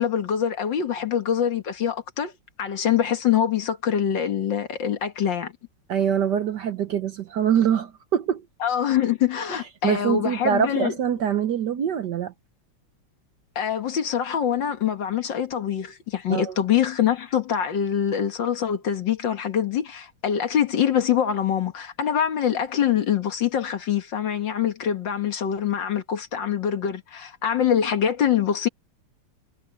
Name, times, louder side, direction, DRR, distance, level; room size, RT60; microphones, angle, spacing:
voice 1, 0.0-2.3 2.6-5.5 8.6-10.9 13.6-28.7, left 9 dB, 60° left, 2.1 m, -24 dB
voice 2, 5.9-8.4 9.8-12.3 16.3-16.5, right 8 dB, 60° right, 1.3 m, -24 dB
omnidirectional pair, 2.4 m